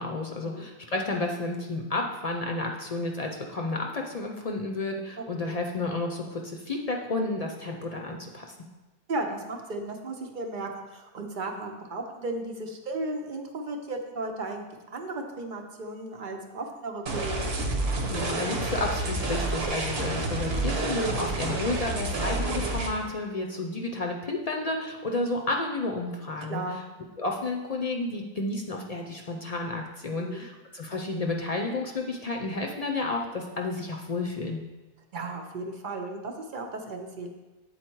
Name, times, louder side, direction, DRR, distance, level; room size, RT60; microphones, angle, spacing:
voice 1, 0.0-8.5 18.1-26.6 27.2-34.6, left 2 dB, 45° left, 2 dB, 0.6 m, -31 dB
voice 2, 9.1-17.5 26.5-26.8 30.0-30.5 35.1-37.3, right 2 dB, 55° right, 3 dB, 0.8 m, -35 dB
sound 1, 17.1-22.9, right 2 dB, 80° right, 1.1 m, -29 dB
7.9 x 4.1 x 4.5 m, 1.2 s
omnidirectional pair, 1.0 m